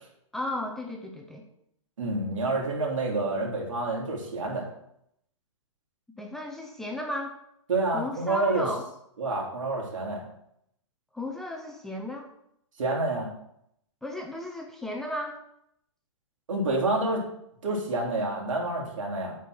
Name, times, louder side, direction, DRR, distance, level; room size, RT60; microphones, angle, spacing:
voice 1, 0.3-1.4 6.2-7.4 7.9-8.8 11.1-12.3 14.0-15.4, left 1 dB, ahead, 1 dB, 0.4 m, -34 dB
voice 2, 2.0-4.7 7.7-8.7 9.2-10.3 12.8-13.3 16.5-17.2 17.6-19.4, right 2 dB, 80° right, -1 dB, 3.3 m, -28 dB
9.2 x 4.3 x 6.2 m, 0.75 s
hypercardioid pair, 160°, 16 cm